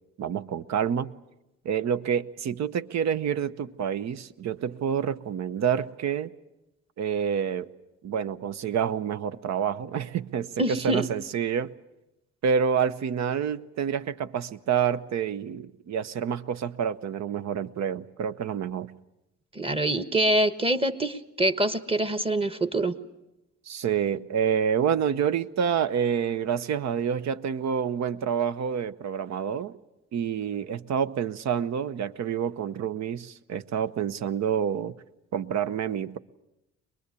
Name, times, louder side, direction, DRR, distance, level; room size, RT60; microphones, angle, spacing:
voice 1, 0.2-1.1 1.6-6.3 7.0-7.7 8.0-11.7 12.4-18.9 23.7-29.8 30.1-34.9 35.3-36.2, right 8 dB, 65° right, 0.9 m, -28 dB
voice 2, 10.6-11.0 19.5-22.9, right 1 dB, 20° right, 1.3 m, -25 dB
23.0 x 21.0 x 8.3 m
cardioid pair, 90°, 30 cm